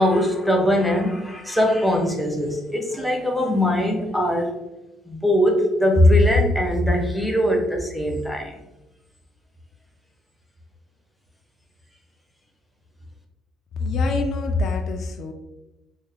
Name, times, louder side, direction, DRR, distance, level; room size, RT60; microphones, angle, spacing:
voice 1, 0.0-4.5 5.1-8.5, left 1 dB, ahead, 1 dB, 0.6 m, -20 dB
voice 2, 13.8-15.3, left 3 dB, 55° left, 4 dB, 0.3 m, -24 dB
3.3 x 2.0 x 3.4 m, 1.0 s
cardioid pair, 135°, 0 cm